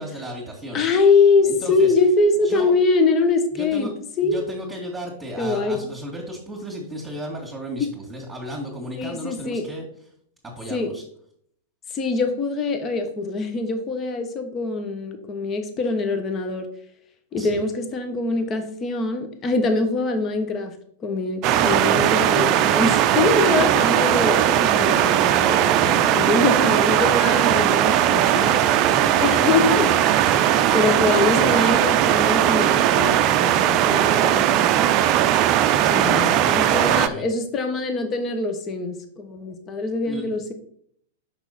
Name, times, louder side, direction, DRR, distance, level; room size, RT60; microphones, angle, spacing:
voice 1, 0.0-0.8 1.4-1.9 2.4-2.7 3.5-3.9 4.2-9.9 10.4-11.0 17.4-17.6 21.5-23.0 28.2-30.8 35.8-37.3 40.0-40.3, equal, 10° right, -4 dB, 2.2 m, -35 dB
voice 2, 0.7-3.9 4.2-4.5 5.4-5.8 7.8-7.9 9.0-9.7 10.7-10.9 11.9-16.7 17.3-20.7 21.0-28.5 29.2-29.9 30.7-35.0 35.9-40.5, left 3 dB, 30° left, 6 dB, 1.2 m, -23 dB
sound 1, 21.4-37.1, right 11 dB, 40° right, 0.5 m, -18 dB
6.0 x 5.8 x 4.2 m, 0.65 s
hypercardioid pair, 105°, 0 cm